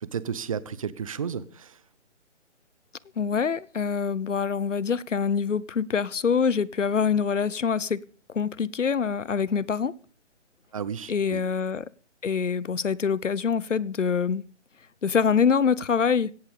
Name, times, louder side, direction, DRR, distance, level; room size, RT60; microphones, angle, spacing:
voice 1, 0.0-1.8 10.7-11.4, right 7 dB, 30° right, 0.9 m, -33 dB
voice 2, 3.2-8.0 8.3-9.9 11.1-11.9 12.2-14.4 15.0-16.3, left 6 dB, 90° left, 1.0 m, -25 dB
17.0 x 13.5 x 5.2 m
hypercardioid pair, 160°, 36 cm